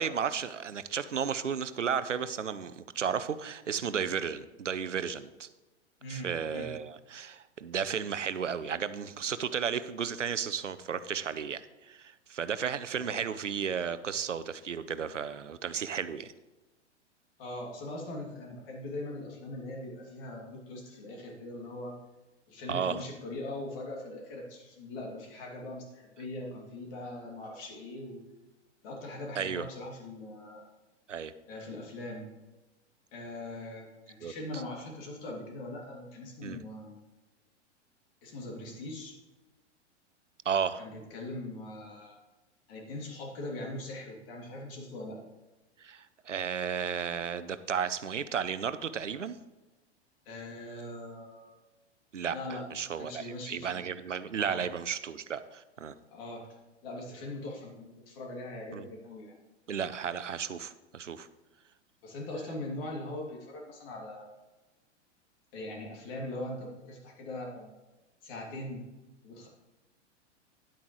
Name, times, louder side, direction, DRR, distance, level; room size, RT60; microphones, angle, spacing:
voice 1, 0.0-5.5 6.1-16.3 22.7-23.0 29.4-29.6 31.1-31.3 34.2-34.3 36.4-36.6 40.5-40.9 45.8-49.4 52.1-55.9 58.7-58.9 59.7-61.3, right 7 dB, 90° right, 14 dB, 0.6 m, -33 dB
voice 2, 6.0-6.7 12.9-13.2 17.4-22.0 22.5-28.2 28.8-30.6 31.5-32.3 33.1-37.0 38.2-39.2 40.8-42.2 42.7-45.2 50.3-51.6 52.3-52.7 53.0-53.8 54.4-54.6 56.1-56.5 56.8-59.3 62.0-64.3 65.5-67.7 68.2-68.9 69.2-69.5, left 1 dB, 50° left, 0 dB, 2.6 m, -41 dB
10.0 x 8.6 x 3.1 m, 1.1 s
figure-of-eight pair, 100°, 36 cm